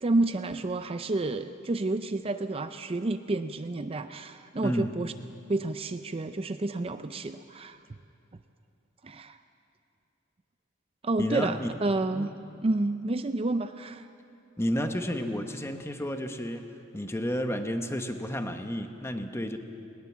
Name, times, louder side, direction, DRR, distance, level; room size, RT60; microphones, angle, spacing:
voice 1, 0.0-5.1 5.5-7.8 9.0-9.4 11.0-12.3 12.6-14.1, right 2 dB, 30° right, 9 dB, 0.5 m, -30 dB
voice 2, 11.2-11.7 12.1-12.3 14.6-16.7 16.9-19.6, equal, 15° left, 6 dB, 1.1 m, -31 dB
19.5 x 19.5 x 7.4 m, 2.6 s
head